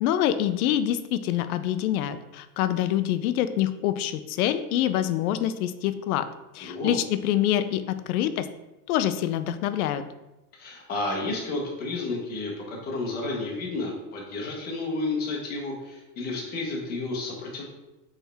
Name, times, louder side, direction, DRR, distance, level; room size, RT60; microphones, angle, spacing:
voice 1, 0.0-6.3 6.5-8.5 8.9-10.0, left 11 dB, 90° left, 11 dB, 0.5 m, -26 dB
voice 2, 6.6-6.9 10.6-17.6, left 2 dB, 20° left, -2 dB, 0.9 m, -31 dB
4.4 x 3.4 x 3.3 m, 1.0 s
supercardioid pair, 165°, 43 cm